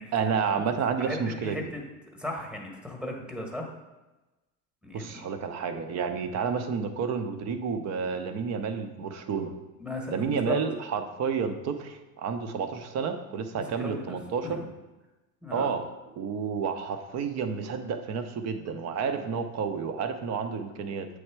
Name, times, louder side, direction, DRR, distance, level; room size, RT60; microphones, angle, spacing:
voice 1, 0.1-1.6 4.9-9.5 10.1-14.6 15.5-15.8 16.2-21.1, right 6 dB, 35° right, 7 dB, 0.7 m, -30 dB
voice 2, 1.0-1.8 2.1-3.7 4.8-5.2 6.1-6.2 9.8-10.6 13.5-14.0 14.4-14.6 15.4-15.7 19.2-19.3, left 1 dB, ahead, 0 dB, 1.2 m, -36 dB
7.8 x 3.3 x 4.6 m, 1.1 s
hypercardioid pair, 105°, 49 cm